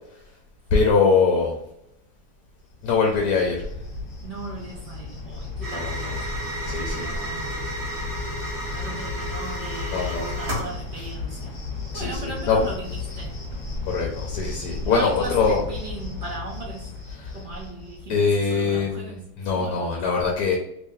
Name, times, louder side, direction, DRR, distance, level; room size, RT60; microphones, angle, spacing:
voice 1, 0.7-1.6 2.8-3.7 5.7-6.2 6.7-7.1 9.9-10.3 11.0-11.1 11.9-12.6 13.9-15.6 17.1-17.4 18.1-20.6, left 5 dB, 70° left, 0 dB, 1.1 m, -23 dB
Cricket, 2.7-18.4, left 4 dB, 25° left, 1.6 m, -35 dB
voice 2, 4.2-7.7 8.7-11.6 11.9-12.9 13.2-13.3 14.8-16.9 17.3-19.2 19.5-20.1, right 3 dB, 80° right, -2 dB, 0.4 m, -37 dB
sound 1, 5.6-10.7, right 1 dB, 45° right, 1.3 m, -33 dB
3.1 x 2.6 x 3.7 m, 0.78 s
omnidirectional pair, 1.8 m